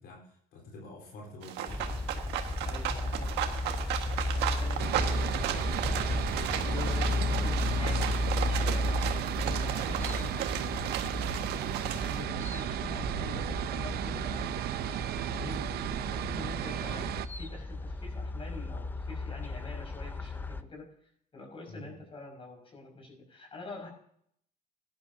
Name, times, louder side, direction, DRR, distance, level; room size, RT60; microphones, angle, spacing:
voice 1, 0.0-2.0 9.8-10.0 11.6-11.9 12.2-12.5 16.8-17.1 21.7-21.9, left 1 dB, 70° left, -1 dB, 4.2 m, -48 dB
sound 1, 1.4-12.2, right 10 dB, 85° right, 1.7 m, -35 dB
sound 2, 1.7-20.6, left 2 dB, 10° left, 0.6 m, -34 dB
voice 2, 2.6-5.2 5.7-6.0 6.5-11.2 11.8-23.9, left 3 dB, 35° left, 1 dB, 6.0 m, -46 dB
sound 3, 4.8-17.3, right 13 dB, 70° right, 0.6 m, -35 dB
18.0 x 11.5 x 2.8 m, 0.67 s
cardioid pair, 110°, 17 cm